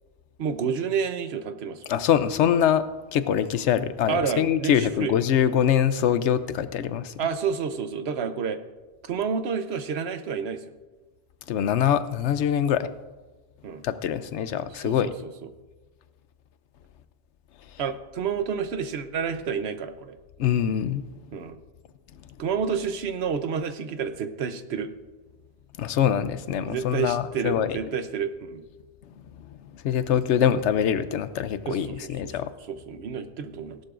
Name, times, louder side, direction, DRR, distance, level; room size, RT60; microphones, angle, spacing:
voice 1, 0.4-1.8 4.1-5.1 7.2-8.6 9.0-10.6 13.6-13.8 14.7-15.5 17.8-20.1 21.3-21.6 22.4-24.9 26.7-28.6 31.7-32.3 32.7-33.8, right 6 dB, 70° right, 9 dB, 1.0 m, -29 dB
voice 2, 1.9-2.8 3.1-7.3 11.5-12.9 13.8-15.1 20.4-21.0 25.8-27.8 29.7-32.5, left 9 dB, 85° left, 13 dB, 0.9 m, -24 dB
16.5 x 11.5 x 2.5 m, 1.2 s
omnidirectional pair, 1.1 m